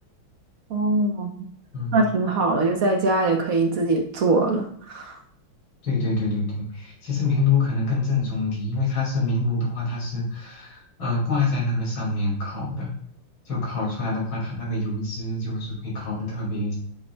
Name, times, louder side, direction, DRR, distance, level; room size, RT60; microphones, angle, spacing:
voice 1, 0.7-1.5 1.9-5.2, right 2 dB, 60° right, 3 dB, 0.9 m, -22 dB
voice 2, 1.7-2.1 5.8-12.9 13.4-16.7, left 3 dB, 70° left, -4 dB, 3.2 m, -26 dB
8.6 x 5.2 x 2.3 m, 0.65 s
omnidirectional pair, 2.3 m